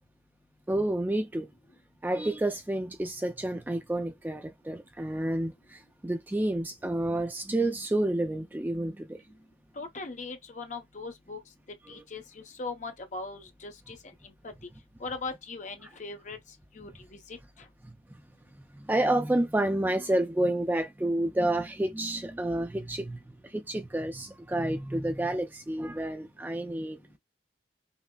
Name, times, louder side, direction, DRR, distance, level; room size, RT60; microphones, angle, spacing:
voice 1, 0.7-1.5 2.0-9.2 17.8-17.9 18.6-27.0, right 1 dB, 10° right, 0.3 m, -29 dB
voice 2, 9.8-11.4 11.9-14.5 15.0-16.4 16.7-17.4, left 3 dB, 45° left, 0.7 m, -40 dB
5.6 x 2.0 x 2.2 m
head